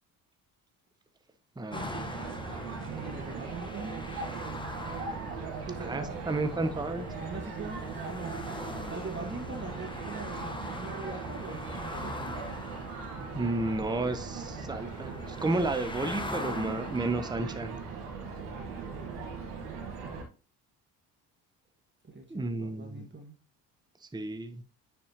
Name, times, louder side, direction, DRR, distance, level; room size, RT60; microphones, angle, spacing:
voice 1, 1.6-2.1 5.8-7.1 13.3-17.8 22.3-23.1 24.0-24.6, right 2 dB, 10° right, 1.0 m, -32 dB
sound 1, 1.7-17.4, left 2 dB, 10° left, 1.2 m, -42 dB
sound 2, 1.7-20.2, right 4 dB, 85° right, 1.7 m, -39 dB
voice 2, 2.8-4.0 5.7-6.2 6.5-6.9 7.2-8.4 8.9-12.5 16.3-16.8 22.1-23.4, right 3 dB, 25° right, 2.1 m, -42 dB
9.7 x 4.3 x 3.0 m
hypercardioid pair, 60°, 45 cm